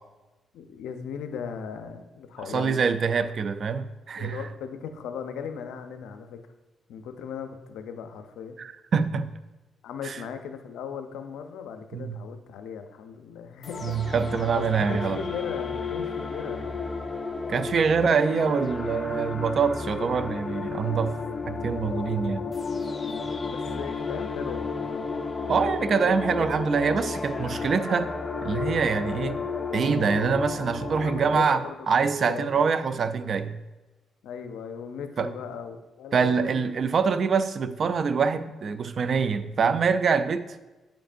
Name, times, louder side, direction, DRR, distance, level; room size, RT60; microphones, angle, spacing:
voice 1, 0.5-3.2 4.2-6.4 6.9-8.6 9.8-17.0 18.0-18.3 22.9-25.1 31.0-32.8 34.2-36.7, left 7 dB, 90° left, 0.5 m, -38 dB
voice 2, 2.4-4.5 8.6-9.3 10.0-10.2 11.9-12.2 13.8-15.2 17.5-21.2 21.5-22.5 25.5-28.1 28.4-29.4 29.7-33.6 35.2-35.3 36.1-40.6, right 5 dB, 55° right, 0.4 m, -25 dB
sound 1, 13.6-31.4, left 4 dB, 35° left, 0.7 m, -32 dB
8.8 x 5.1 x 2.5 m
cardioid pair, 80°, 0 cm